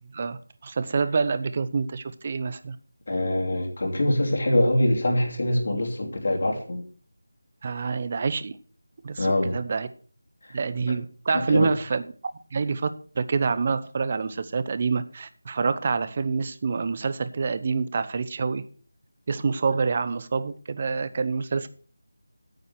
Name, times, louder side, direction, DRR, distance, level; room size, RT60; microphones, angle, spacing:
voice 1, 0.1-2.8 7.6-8.5 9.0-9.9 10.5-18.6 19.3-21.7, right 4 dB, 35° right, 14 dB, 0.8 m, -27 dB
voice 2, 3.1-6.8 9.2-9.6 11.3-11.7, left 1 dB, 55° left, 0 dB, 2.9 m, -24 dB
9.4 x 8.7 x 6.2 m, 0.42 s
figure-of-eight pair, 165°, 0 cm